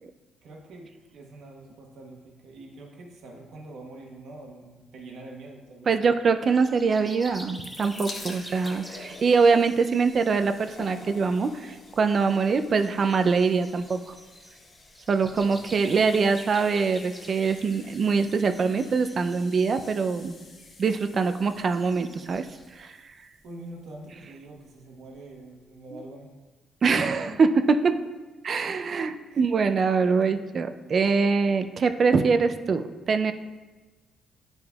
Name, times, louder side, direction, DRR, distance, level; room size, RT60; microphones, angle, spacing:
voice 1, 0.4-5.9 15.4-15.8 23.4-26.3 27.3-27.4 29.3-30.4, right 2 dB, 75° right, 0 dB, 1.1 m, -44 dB
voice 2, 5.9-14.1 15.1-20.4 20.8-22.5 22.8-22.9 26.8-28.0 28.4-33.3, right 5 dB, 50° right, 9 dB, 0.4 m, -23 dB
sound 1, 6.5-22.8, equal, 5° right, 0.8 m, -48 dB
sound 2, 7.5-24.3 25.1-25.2 25.4-25.5, left 3 dB, 60° left, 1.3 m, -48 dB
9.4 x 5.2 x 2.3 m, 1.3 s
cardioid pair, 90°, 0 cm